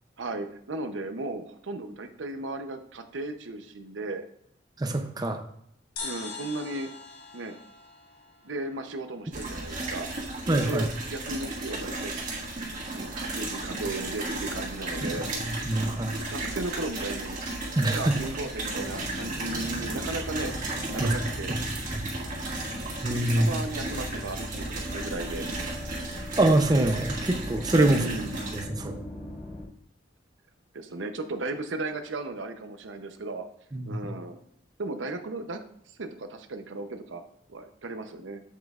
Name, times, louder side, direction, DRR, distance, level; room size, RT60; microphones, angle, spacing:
voice 1, 0.2-4.2 6.0-6.9 7.3-7.6 8.4-10.1 10.7-12.1 12.9-15.3 16.3-17.4 17.8-20.5 20.9-21.5 23.3-25.5 27.9-28.4 30.7-33.4 33.9-34.4 34.8-35.6 36.0-37.2 37.5-38.4, right 2 dB, 85° right, 8 dB, 0.7 m, -35 dB
voice 2, 4.8-5.4 10.5-10.9 15.4-16.2 17.7-18.1 21.0-21.1 21.5-21.6 21.9-22.1 23.0-23.5 26.4-28.1 28.5-29.0 33.7-34.0, right 1 dB, 20° right, 6 dB, 0.5 m, -24 dB
sound 1, 6.0-9.5, left 4 dB, 55° left, 1.6 m, -42 dB
sound 2, 9.3-28.6, right 2 dB, 45° right, 1.7 m, -34 dB
sound 3, 18.8-29.7, left 1 dB, 10° left, 1.6 m, -40 dB
7.6 x 7.5 x 2.4 m, 0.67 s
head